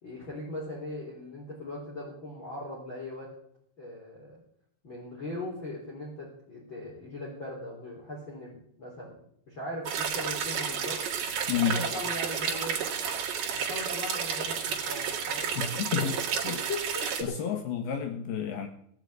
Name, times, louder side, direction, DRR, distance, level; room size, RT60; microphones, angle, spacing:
voice 1, 0.0-3.3 3.8-4.4 4.8-9.1 9.5-11.0 11.7-12.8 13.5-17.3, left 1 dB, 30° left, -5 dB, 4.2 m, -39 dB
sound 1, 9.9-17.2, right 7 dB, 55° right, 3.3 m, -31 dB
voice 2, 11.5-11.8 15.6-16.1 16.4-16.6 17.2-18.7, left 8 dB, 70° left, 6 dB, 2.9 m, -30 dB
18.0 x 6.4 x 9.3 m, 0.68 s
omnidirectional pair, 4.9 m